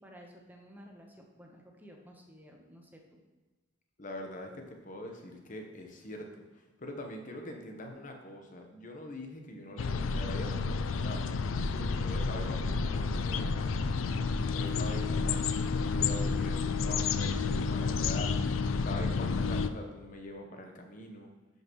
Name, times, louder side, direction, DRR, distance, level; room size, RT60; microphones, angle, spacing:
voice 1, 0.0-3.0, equal, 10° right, 1 dB, 0.9 m, -53 dB
voice 2, 4.0-11.3 11.7-13.7 14.4-18.3 18.8-21.3, left 1 dB, 40° left, 3 dB, 1.0 m, -44 dB
sound 1, 9.8-19.7, left 4 dB, 85° left, 0.4 m, -30 dB
12.5 x 5.5 x 3.1 m, 1.2 s
head